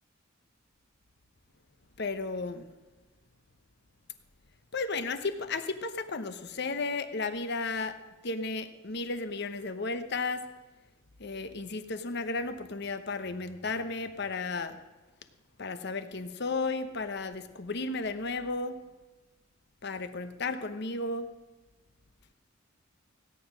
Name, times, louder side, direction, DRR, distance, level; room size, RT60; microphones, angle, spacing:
voice 1, 2.0-2.7 4.7-10.5 11.2-14.8 15.6-18.8 19.8-21.3, left 3 dB, 55° left, 9 dB, 1.0 m, -34 dB
17.0 x 9.6 x 6.2 m, 1.2 s
head